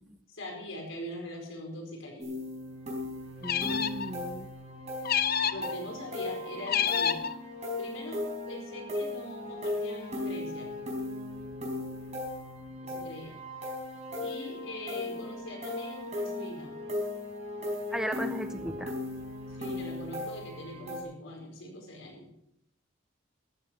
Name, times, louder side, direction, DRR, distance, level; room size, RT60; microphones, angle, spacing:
voice 1, 0.3-2.3 5.4-7.2 7.8-10.7 12.8-13.3 14.2-16.7 19.5-22.3, left 1 dB, 75° left, 1 dB, 4.7 m, -42 dB
sound 1, 2.2-21.0, left 2 dB, 35° right, 4.5 m, -37 dB
sound 2, 3.4-4.1 5.0-5.7 6.7-7.3, left 8 dB, 50° left, 0.6 m, -28 dB
voice 2, 3.4-4.5 17.9-18.9, equal, 5° right, 8 dB, 0.6 m, -36 dB
14.0 x 13.0 x 4.6 m, 0.78 s
head